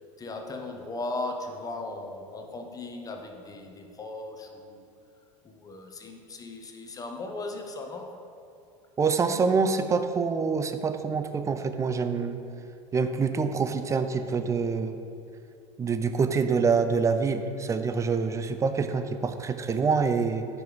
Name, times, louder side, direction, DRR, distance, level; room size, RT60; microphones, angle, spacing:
voice 1, 0.2-4.8 5.4-8.1, left 2 dB, 20° left, 4 dB, 0.7 m, -37 dB
voice 2, 9.0-12.4 12.9-14.9 15.8-20.5, right 5 dB, 15° right, 8 dB, 0.4 m, -26 dB
5.4 x 4.5 x 4.7 m, 2.5 s
hypercardioid pair, 80°, 17 cm